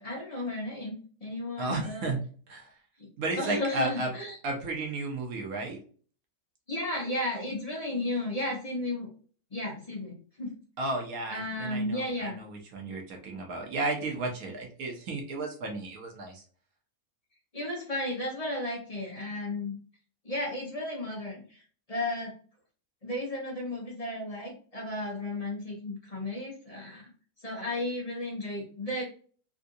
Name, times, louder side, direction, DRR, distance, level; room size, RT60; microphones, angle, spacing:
voice 1, 0.0-2.1 3.0-3.1 3.4-4.4 6.7-9.1 9.5-10.5 11.3-12.4 17.5-19.7 20.2-21.6 21.9-22.3 23.0-27.1 27.4-29.0, left 1 dB, 30° left, -4 dB, 1.0 m, -34 dB
voice 2, 1.6-2.2 2.5-2.7 3.2-4.1 4.4-5.8 10.8-16.4, right 2 dB, 80° right, 2 dB, 1.3 m, -33 dB
3.6 x 2.6 x 2.6 m, 0.43 s
omnidirectional pair, 1.5 m